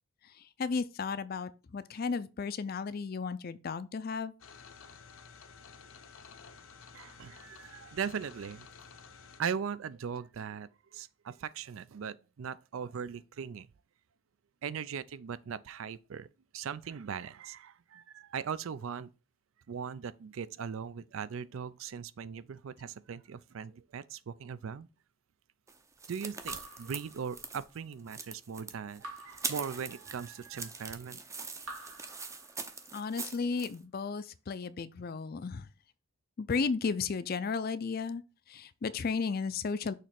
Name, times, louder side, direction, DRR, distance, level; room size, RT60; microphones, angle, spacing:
voice 1, 0.6-4.3 32.9-35.7 36.4-38.2 38.5-39.9, left 5 dB, 45° left, 0.4 m, -34 dB
sound 1, 4.4-9.4, left 5 dB, 75° left, 0.8 m, -53 dB
voice 2, 6.9-8.7 9.4-13.7 14.6-16.3 16.5-19.1 19.7-24.9 26.1-31.2, right 7 dB, 75° right, 0.4 m, -39 dB
sound 2, 25.7-33.7, right 4 dB, 15° right, 0.5 m, -42 dB
Raindrop / Drip, 26.5-27.8 29.0-30.4 31.6-33.0, right 2 dB, 90° right, 2.0 m, -49 dB
6.6 x 3.0 x 5.8 m
head